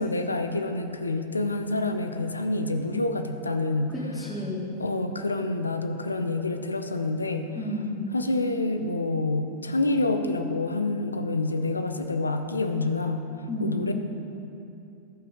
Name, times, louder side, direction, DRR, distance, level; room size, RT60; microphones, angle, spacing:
voice 1, 0.0-3.9 4.8-7.5 8.1-13.3 13.6-13.9, left 2 dB, 80° left, 7 dB, 0.6 m, -27 dB
voice 2, 3.9-4.7 7.6-8.1 13.5-13.9, left 1 dB, 15° left, -6 dB, 2.1 m, -31 dB
17.0 x 5.8 x 3.7 m, 2.8 s
figure-of-eight pair, 90°, 0 cm